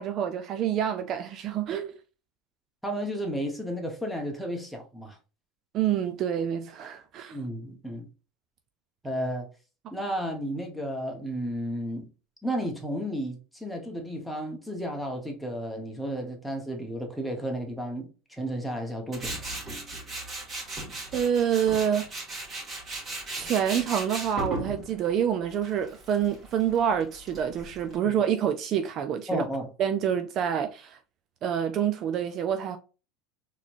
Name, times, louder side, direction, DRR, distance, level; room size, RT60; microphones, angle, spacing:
voice 1, 0.0-1.9 5.7-7.4 21.1-22.1 23.4-29.4 29.8-31.0 31.4-32.8, right 9 dB, 45° right, 0.4 m, -27 dB
voice 2, 2.8-5.2 7.3-8.1 9.0-9.5 9.9-12.1 12.4-19.4 28.1-28.2 29.3-29.7, equal, ahead, 1.3 m, -33 dB
Tools, 19.1-28.0, right 2 dB, 30° right, 2.0 m, -37 dB
4.0 x 3.1 x 2.6 m
supercardioid pair, 110°, 0 cm